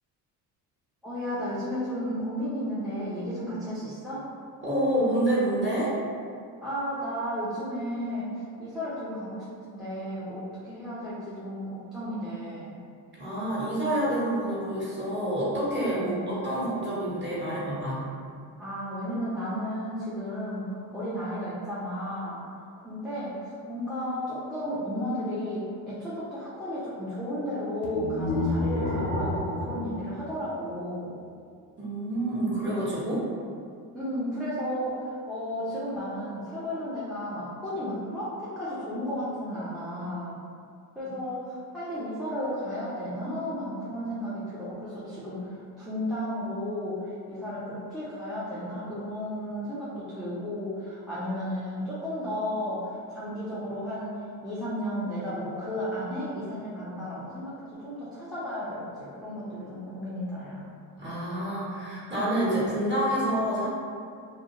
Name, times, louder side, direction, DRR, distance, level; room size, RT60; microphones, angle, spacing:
voice 1, 1.0-4.3 6.6-12.8 15.9-16.4 18.6-22.4 22.8-31.2 33.9-40.4 40.9-60.6, equal, ahead, -12 dB, 0.6 m, -33 dB
voice 2, 4.6-5.9 13.2-18.0 31.8-33.2 41.0-41.1 61.0-63.7, right 1 dB, 25° right, -9 dB, 1.3 m, -28 dB
sound 1, 27.8-31.0, left 1 dB, 45° left, 0.6 m, -30 dB
2.4 x 2.2 x 2.8 m, 2.3 s
hypercardioid pair, 65°, 46 cm